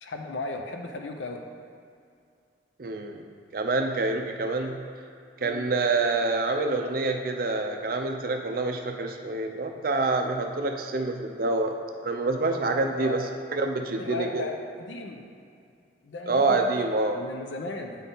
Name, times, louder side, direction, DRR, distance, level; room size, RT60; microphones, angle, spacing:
voice 1, 0.0-1.4 5.4-5.7 13.0-13.3 14.0-15.3 16.0-16.7 17.1-18.0, left 2 dB, 85° left, 3 dB, 0.6 m, -36 dB
voice 2, 2.8-3.2 3.5-4.8 5.4-11.7 12.0-13.2 13.5-14.4 16.3-17.2, right 3 dB, 50° right, 4 dB, 0.5 m, -27 dB
8.2 x 4.1 x 3.8 m, 2.4 s
head